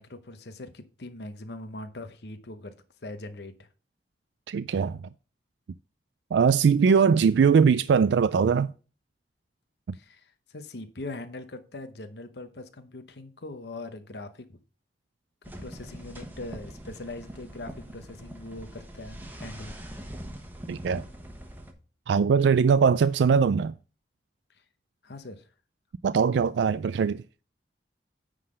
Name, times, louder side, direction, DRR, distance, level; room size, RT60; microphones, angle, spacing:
voice 1, 0.0-2.7 3.0-3.7 9.9-14.6 15.6-19.7 24.5-24.6 25.0-25.5, left 2 dB, 65° left, 0.9 m, -41 dB
voice 2, 4.5-5.0 6.3-8.7 20.7-21.0 22.1-23.7 26.0-27.2, right 6 dB, 75° right, 0.3 m, -21 dB
sound 1, 15.4-21.7, right 1 dB, 10° right, 1.2 m, -43 dB
9.7 x 3.9 x 6.4 m
head